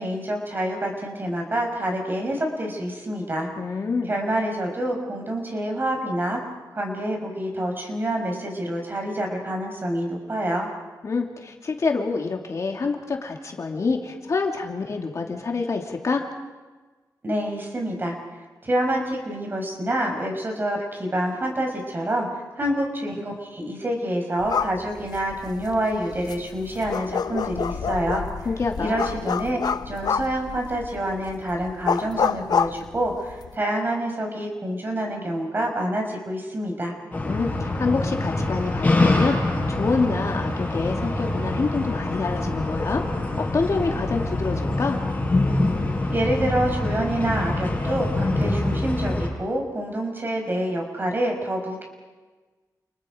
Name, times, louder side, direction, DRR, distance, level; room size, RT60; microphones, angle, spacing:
voice 1, 0.0-3.5 4.1-6.4 6.7-10.7 17.2-18.1 18.6-22.3 22.5-28.3 28.8-36.9 46.1-51.8, right 1 dB, 30° right, 2 dB, 5.5 m, -27 dB
voice 2, 3.6-4.1 11.0-16.2 28.4-29.0 37.3-43.0 43.4-45.0, left 4 dB, 45° left, 2 dB, 2.7 m, -27 dB
sound 1, 24.4-33.5, left 6 dB, 70° left, 0.8 m, -28 dB
sound 2, 37.1-49.3, left 2 dB, 20° left, 7.9 m, -25 dB
29.5 x 29.0 x 5.2 m, 1.3 s
wide cardioid pair, 175°, 7 cm